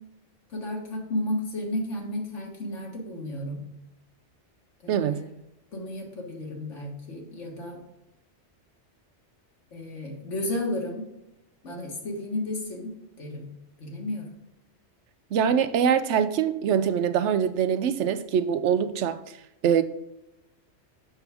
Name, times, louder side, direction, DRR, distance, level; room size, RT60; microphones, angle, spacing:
voice 1, 0.5-3.6 4.8-5.3 5.7-7.8 9.7-11.0 11.6-13.5 13.8-14.3, left 1 dB, 90° left, 1.9 m, -33 dB
voice 2, 4.9-5.2 15.3-19.2 19.6-19.8, right 8 dB, 80° right, 0.9 m, -23 dB
6.9 x 6.0 x 3.4 m
omnidirectional pair, 1.2 m